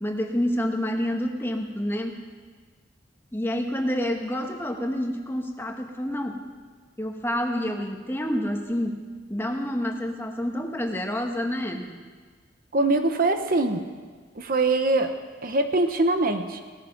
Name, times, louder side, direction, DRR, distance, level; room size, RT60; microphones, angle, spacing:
voice 1, 0.0-2.2 3.3-6.4 7.0-9.0 9.3-12.0, equal, 10° left, 3 dB, 1.3 m, -28 dB
voice 2, 12.7-13.8 14.4-15.1 15.4-16.6, right 2 dB, 50° right, 7 dB, 0.9 m, -23 dB
17.0 x 13.5 x 5.9 m, 1.5 s
head